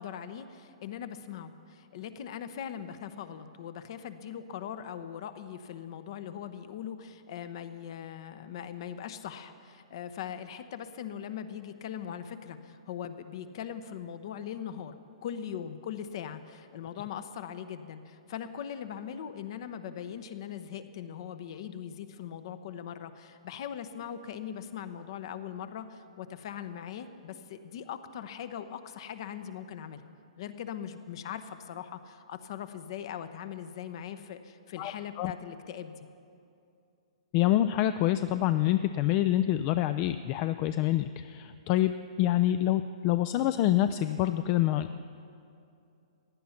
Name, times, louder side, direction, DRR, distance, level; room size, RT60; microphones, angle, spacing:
voice 1, 0.0-14.9 15.2-30.0 30.4-36.1, left 9 dB, 55° left, 11 dB, 0.8 m, -40 dB
voice 2, 37.3-45.0, left 13 dB, 35° left, 11 dB, 0.4 m, -26 dB
16.0 x 10.5 x 5.7 m, 2.6 s
figure-of-eight pair, 120°, 3 cm